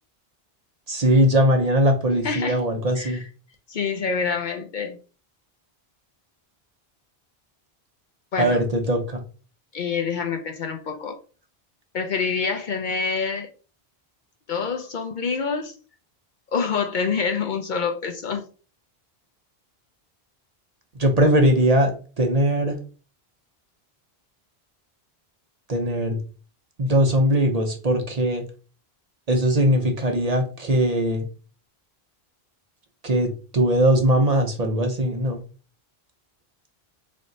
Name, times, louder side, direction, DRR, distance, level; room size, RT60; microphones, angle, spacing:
voice 1, 0.9-3.2 8.4-9.2 21.0-22.8 25.7-26.2 26.8-28.4 29.3-31.3 33.0-35.4, equal, 45° right, 0.7 m, -20 dB
voice 2, 2.2-2.6 3.0-3.2 3.7-5.0 8.3-8.6 9.7-11.2 11.9-13.5 14.5-15.7 16.5-18.5, left 5 dB, 55° left, 0.6 m, -26 dB
3.4 x 2.6 x 3.8 m
omnidirectional pair, 1.0 m